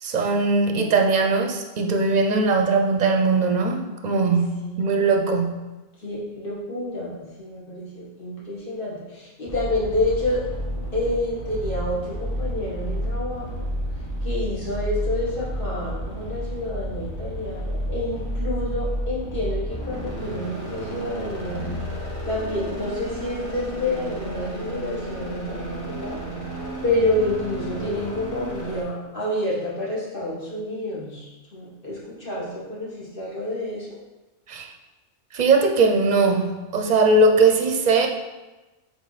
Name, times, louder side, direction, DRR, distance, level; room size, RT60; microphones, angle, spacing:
voice 1, 0.0-5.7 34.5-34.7 35.3-38.1, right 3 dB, 45° right, 4 dB, 0.7 m, -20 dB
voice 2, 4.6-5.0 6.0-10.4 10.9-13.6 14.2-21.7 22.3-26.2 26.8-33.9, left 1 dB, 50° left, -6 dB, 1.9 m, -28 dB
sound 1, 9.5-28.8, equal, 15° left, 1.2 m, -31 dB
7.6 x 3.2 x 4.1 m, 1.1 s
omnidirectional pair, 1.2 m